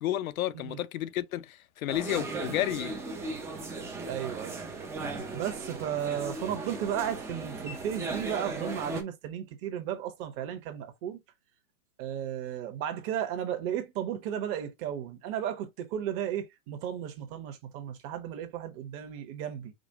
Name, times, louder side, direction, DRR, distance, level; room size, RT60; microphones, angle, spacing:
voice 1, 0.0-2.9, left 13 dB, 75° left, 0.6 m, -31 dB
sound 1, 1.9-9.0, right 3 dB, 5° right, 0.4 m, -37 dB
voice 2, 4.1-4.6 5.3-11.2 12.0-19.7, right 10 dB, 30° right, 1.0 m, -34 dB
5.1 x 2.2 x 3.9 m
hypercardioid pair, 140°, 43 cm